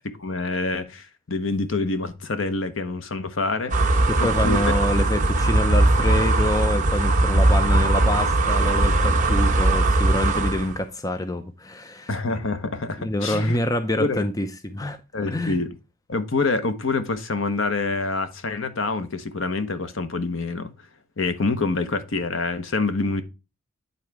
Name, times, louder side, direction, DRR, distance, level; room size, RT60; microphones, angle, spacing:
voice 1, 0.0-4.6 12.1-13.6 14.0-14.2 15.1-15.7 16.1-20.7 21.2-23.2, left 3 dB, 60° left, 0.9 m, -26 dB
sound 1, 3.7-10.8, right 2 dB, 35° right, 1.2 m, -20 dB
voice 2, 4.1-12.1 13.0-15.0 15.3-15.6, left 1 dB, 15° left, 0.5 m, -26 dB
9.5 x 4.0 x 4.7 m
head